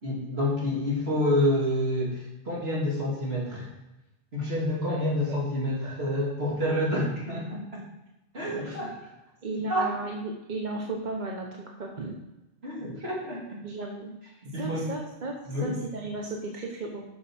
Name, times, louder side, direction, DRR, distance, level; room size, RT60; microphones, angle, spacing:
voice 1, 0.0-3.7 4.3-7.8 8.3-8.9 9.7-9.9 12.6-13.6 14.4-14.9 15.5-15.7, left 1 dB, 60° right, -5 dB, 2.9 m, -28 dB
voice 2, 4.9-5.4 5.8-5.9 8.6-8.8 9.4-12.2 13.0-13.1 13.6-14.1 14.5-15.4 15.6-17.0, right 2 dB, 40° right, 0 dB, 1.1 m, -35 dB
7.4 x 6.2 x 6.1 m, 0.99 s
omnidirectional pair, 1.2 m